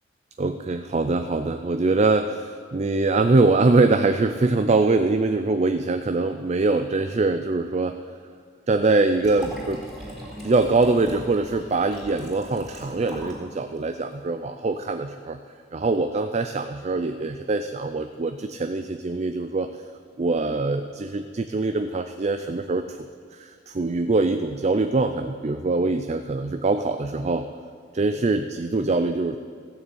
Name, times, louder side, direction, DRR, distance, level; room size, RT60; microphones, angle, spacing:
voice 1, 0.4-8.0 8.7-9.8 10.4-15.4 15.7-19.7 20.2-23.0 23.3-27.5 27.9-29.4, right 3 dB, 35° right, 8 dB, 0.4 m, -23 dB
Liquid, 9.2-13.4 13.8-13.9, equal, ahead, 3.4 m, -40 dB
14.5 x 6.7 x 8.7 m, 2.1 s
head